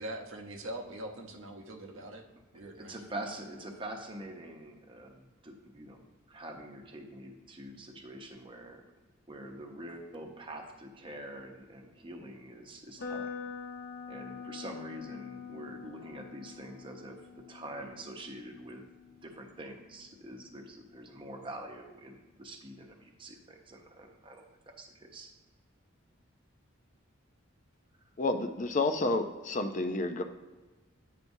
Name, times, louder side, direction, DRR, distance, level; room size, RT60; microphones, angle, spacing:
voice 1, 0.0-2.2 2.5-3.0, right 1 dB, 80° right, 3 dB, 0.9 m, -42 dB
voice 2, 2.5-6.0 6.3-8.8 9.3-13.3 14.1-18.8 19.2-25.3, right 1 dB, 25° right, 3 dB, 0.8 m, -45 dB
sound 1, 13.0-20.9, left 6 dB, 65° left, 0.9 m, -45 dB
voice 3, 28.2-30.2, left 2 dB, 40° left, 6 dB, 0.5 m, -30 dB
9.3 x 5.8 x 2.7 m, 1.2 s
head